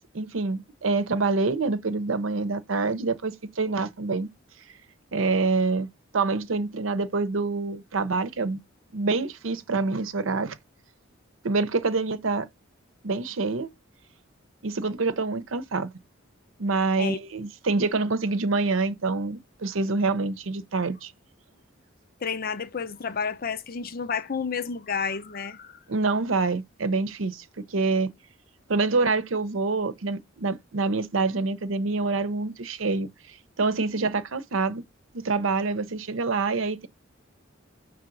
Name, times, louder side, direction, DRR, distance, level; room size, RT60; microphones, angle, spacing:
voice 1, 0.1-4.3 5.1-5.9 6.1-8.6 8.9-10.6 11.4-12.5 13.0-13.7 14.6-15.9 16.6-21.1 25.9-27.4 27.7-28.1 28.7-34.8 35.1-36.9, right 3 dB, 80° right, 0.8 m, -26 dB
voice 2, 22.2-25.8, left 5 dB, 50° left, 0.6 m, -30 dB
5.8 x 3.4 x 5.2 m
head